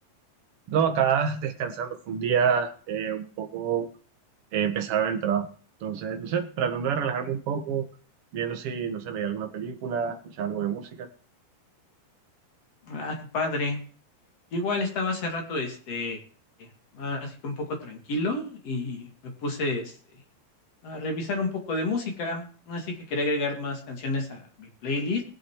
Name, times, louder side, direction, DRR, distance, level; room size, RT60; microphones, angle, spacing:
voice 1, 0.7-3.9 4.5-5.5 5.8-7.9 8.3-11.1, right 7 dB, 50° right, 5 dB, 1.9 m, -27 dB
voice 2, 12.8-13.8 14.5-16.2 16.6-20.0 20.8-25.2, left 2 dB, 45° left, 3 dB, 3.3 m, -30 dB
21.0 x 7.4 x 4.7 m, 0.42 s
omnidirectional pair, 4.4 m